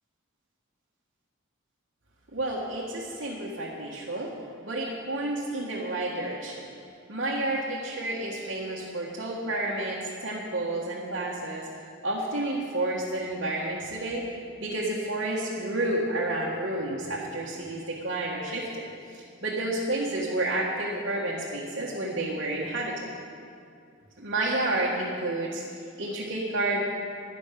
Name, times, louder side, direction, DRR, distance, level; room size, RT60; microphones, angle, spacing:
voice 1, 2.3-4.3 4.6-6.6 7.1-11.7 12.0-23.0 24.2-26.8, right 2 dB, 55° right, -5 dB, 1.6 m, -30 dB
12.0 x 10.5 x 6.8 m, 2.3 s
head